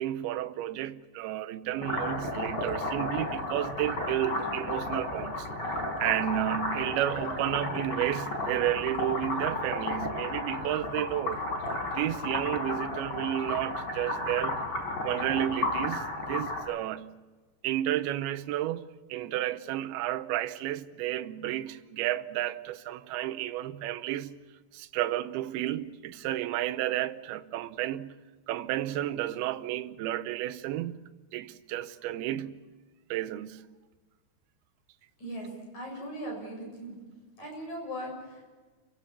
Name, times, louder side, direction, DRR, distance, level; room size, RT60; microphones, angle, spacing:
voice 1, 0.0-5.5 6.0-11.5 11.9-14.7 15.0-17.1 17.6-24.4 24.7-28.2 28.5-32.6 33.1-33.6, right 13 dB, 80° right, 2.6 m, -32 dB
sound 1, 1.8-16.6, left 2 dB, 25° left, 5.4 m, -33 dB
voice 2, 35.7-37.0 37.4-38.4, equal, 45° left, 8.7 m, -38 dB
28.5 x 16.5 x 7.0 m
omnidirectional pair, 4.7 m